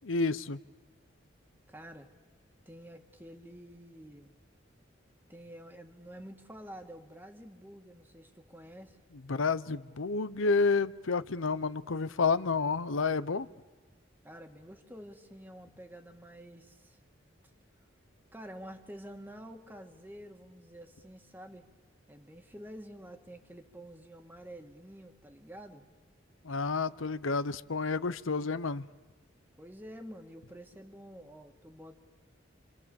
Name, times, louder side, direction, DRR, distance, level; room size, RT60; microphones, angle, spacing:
voice 1, 0.0-0.6 9.3-13.5 26.4-28.9, left 4 dB, 90° left, 15 dB, 0.8 m, -30 dB
voice 2, 1.7-2.1 2.7-4.3 5.3-9.0 14.2-17.0 18.3-21.7 22.1-25.9 29.6-32.0, equal, 10° right, 5 dB, 1.7 m, -49 dB
29.0 x 26.0 x 7.1 m, 1.3 s
head